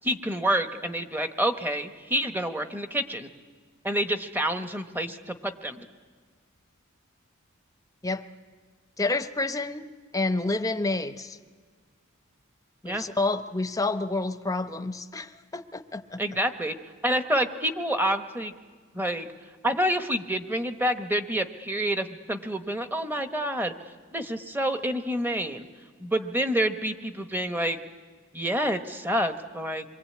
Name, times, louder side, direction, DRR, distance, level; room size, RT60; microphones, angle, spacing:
voice 1, 0.0-3.3 3.8-5.9 12.8-13.0 16.2-16.7 17.0-18.5 18.9-19.3 19.6-23.7 24.1-25.6 26.0-27.8 28.3-29.8, right 1 dB, 10° right, 8 dB, 1.1 m, -28 dB
voice 2, 9.0-9.9 10.1-11.4 12.8-16.2, left 2 dB, 15° left, 10 dB, 0.8 m, -29 dB
27.0 x 23.0 x 8.6 m, 1.5 s
head